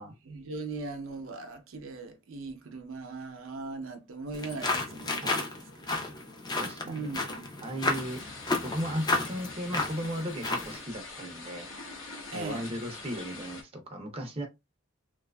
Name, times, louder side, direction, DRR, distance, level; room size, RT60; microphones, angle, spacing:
voice 1, 0.2-5.5 6.9-7.5 12.3-12.7, right 3 dB, 85° right, 0.6 m, -39 dB
sound 1, 4.3-10.8, left 2 dB, 20° left, 0.5 m, -32 dB
voice 2, 6.6-7.1 7.6-8.2 8.6-11.7 12.3-14.5, equal, 30° right, 0.5 m, -36 dB
sound 2, 7.8-13.6, left 3 dB, 80° left, 0.8 m, -44 dB
2.7 x 2.3 x 2.2 m
head